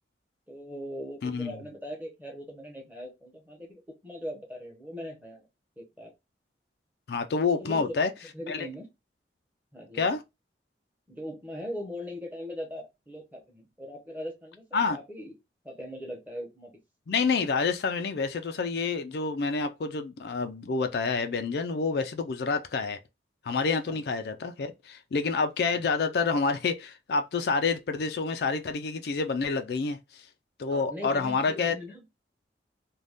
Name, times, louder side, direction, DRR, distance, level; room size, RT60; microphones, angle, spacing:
voice 1, 0.5-5.5 5.8-6.1 7.5-8.0 8.3-8.9 9.7-10.1 11.1-15.3 15.6-16.7 23.9-24.0 25.7-25.9 30.7-32.0, equal, 10° right, 0.9 m, -40 dB
voice 2, 1.2-1.5 7.1-8.1 8.5-8.7 9.9-10.2 14.7-15.0 17.1-23.0 23.4-30.2 30.6-31.7, left 4 dB, 65° left, 0.4 m, -28 dB
2.6 x 2.2 x 3.4 m
head